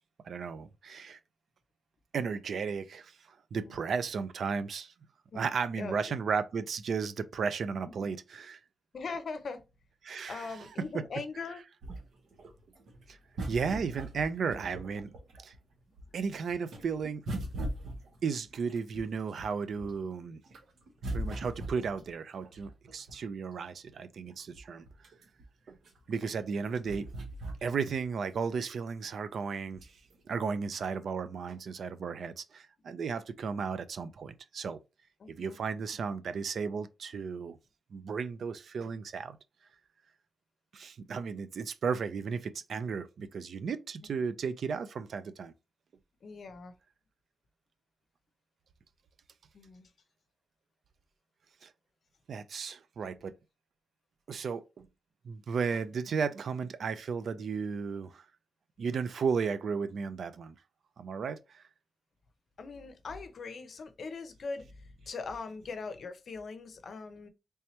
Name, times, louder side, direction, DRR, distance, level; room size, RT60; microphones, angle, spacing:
voice 1, 0.2-1.2 2.1-3.2 3.5-4.9 5.3-8.6 10.0-10.7 10.9-11.0 13.1-13.2 13.5-15.2 15.4-15.5 16.1-17.3 18.2-20.4 21.1-24.8 25.7-25.8 26.1-27.1 27.6-29.8 30.3-34.8 35.3-37.6 37.9-39.4 40.7-45.5 51.6-51.7 52.3-53.3 54.3-54.9 55.2-58.2 58.8-60.5 61.0-61.6, right 5 dB, 60° right, 0.4 m, -34 dB
voice 2, 5.8-6.2 8.9-9.6 10.3-11.6 35.2-35.6 46.2-46.7 49.5-49.9 62.6-67.3, left 4 dB, 55° left, 0.6 m, -41 dB
sound 1, 11.8-15.6 15.9-20.1 20.5-23.4 24.0-24.1 24.3-28.1 28.5-28.6 29.7-30.1 30.8-30.9, right 1 dB, 80° right, 0.9 m, -40 dB
3.4 x 2.8 x 3.0 m
wide cardioid pair, 155°, 0 cm